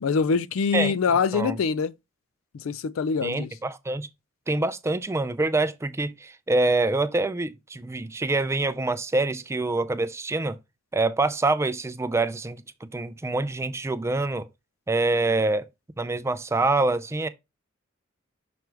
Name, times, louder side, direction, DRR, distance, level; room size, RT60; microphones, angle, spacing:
voice 1, 0.0-1.9 2.6-3.5, left 5 dB, 80° left, 0.4 m, -24 dB
voice 2, 3.2-4.1 4.5-10.6 10.9-14.5 14.9-15.7 16.0-17.3, right 2 dB, 15° right, 0.4 m, -25 dB
6.2 x 4.5 x 3.4 m
head